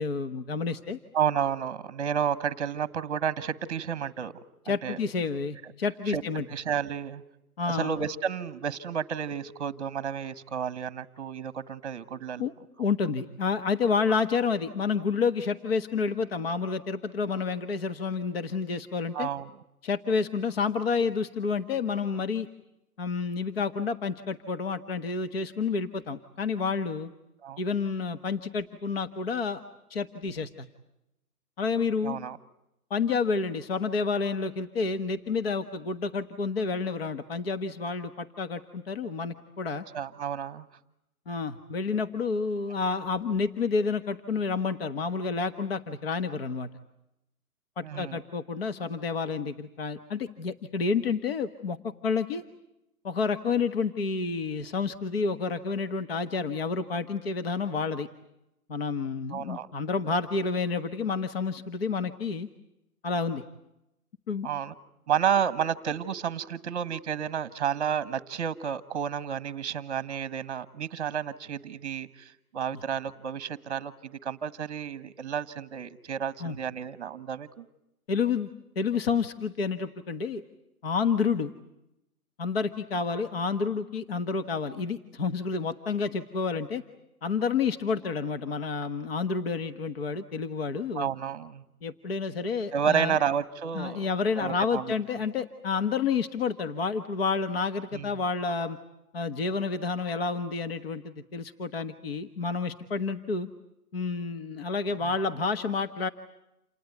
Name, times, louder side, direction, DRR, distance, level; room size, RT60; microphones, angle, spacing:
voice 1, 0.0-1.0 4.6-6.4 7.6-7.9 12.4-12.5 12.8-19.3 19.8-22.5 23.0-27.1 27.6-29.6 29.9-30.7 31.6-32.2 32.9-39.8 41.3-46.7 47.8-52.4 53.0-58.1 58.7-62.5 63.0-63.4 64.3-64.5 76.4-76.6 78.1-78.5 78.7-80.4 80.8-81.5 82.4-86.8 87.2-91.1 91.8-93.2 93.7-98.8 99.1-103.5 103.9-106.1, left 5 dB, 40° left, 9 dB, 1.4 m, -29 dB
voice 2, 1.1-4.3 4.7-5.0 6.1-6.2 6.5-7.2 7.7-12.4 19.1-19.5 27.4-27.6 32.0-32.4 39.9-40.6 47.8-48.2 59.3-59.7 64.4-64.7 65.1-77.6 90.9-91.6 92.7-94.1 94.4-94.9 97.9-98.2, right 8 dB, 25° right, 14 dB, 1.3 m, -31 dB
28.5 x 19.0 x 9.4 m, 0.85 s
hypercardioid pair, 165°, 45 cm